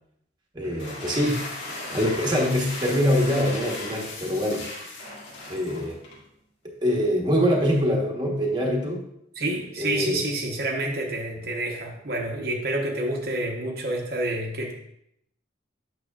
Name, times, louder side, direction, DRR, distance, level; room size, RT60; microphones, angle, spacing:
voice 1, 0.5-1.4 1.8-4.7 5.5-6.0 6.6-9.0 9.8-10.2, equal, 25° right, 0 dB, 1.0 m, -24 dB
sound 1, 0.6-6.2, left 2 dB, 80° left, 1.8 m, -36 dB
voice 2, 9.3-14.7, right 1 dB, 50° right, 0 dB, 0.8 m, -28 dB
8.6 x 6.1 x 2.3 m, 0.75 s
head